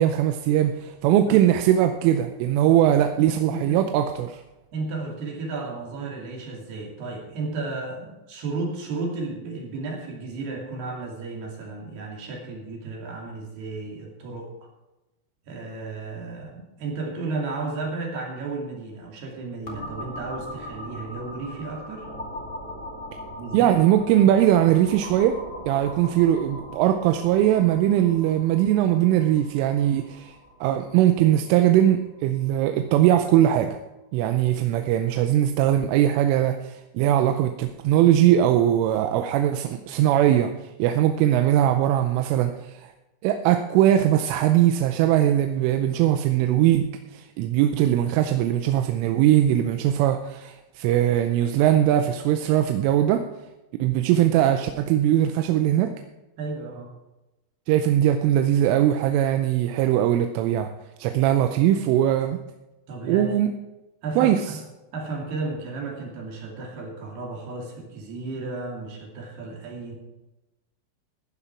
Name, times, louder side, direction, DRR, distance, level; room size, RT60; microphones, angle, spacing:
voice 1, 0.0-4.4 23.5-25.4 25.7-30.3 30.6-33.8 34.1-42.9 43.2-53.2 53.8-55.9 57.7-60.7 61.0-62.4 63.1-63.5 64.2-64.6, right 11 dB, 85° right, 7 dB, 3.2 m, -20 dB
voice 2, 2.8-3.8 4.7-14.5 15.4-22.1 23.4-23.7 56.4-56.9 62.9-63.3 64.0-64.6 64.9-69.9, right 3 dB, 60° right, -1 dB, 4.3 m, -33 dB
sound 1, 19.7-33.2, left 1 dB, 30° left, 1.5 m, -40 dB
14.5 x 10.0 x 4.6 m, 0.99 s
omnidirectional pair, 5.7 m